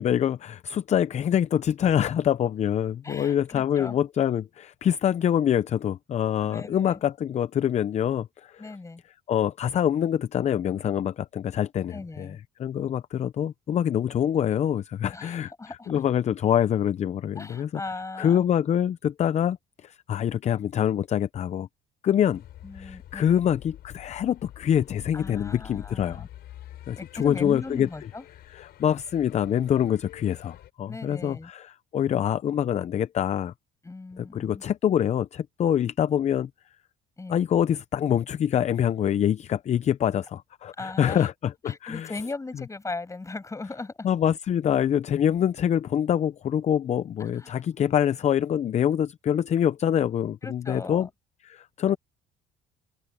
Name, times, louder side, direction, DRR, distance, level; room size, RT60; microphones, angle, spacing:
voice 1, 0.0-8.7 9.3-17.8 18.2-21.7 22.0-22.4 22.7-26.2 26.9-27.9 28.5-33.5 34.2-36.5 37.3-42.1 44.0-51.1 51.4-52.0, left 9 dB, 40° left, 0.6 m, -25 dB
voice 2, 3.0-4.0 6.4-7.0 8.6-9.0 11.9-12.4 15.1-15.9 17.4-18.4 22.6-23.4 25.1-26.3 27.0-28.2 30.9-31.5 33.8-34.6 37.2-37.4 40.8-41.3 41.6-44.1 47.2-47.6 50.4-51.1, left 3 dB, 20° left, 7.8 m, -38 dB
sound 1, 22.3-30.7, left 13 dB, 70° left, 5.7 m, -47 dB
cardioid pair, 110°, 17 cm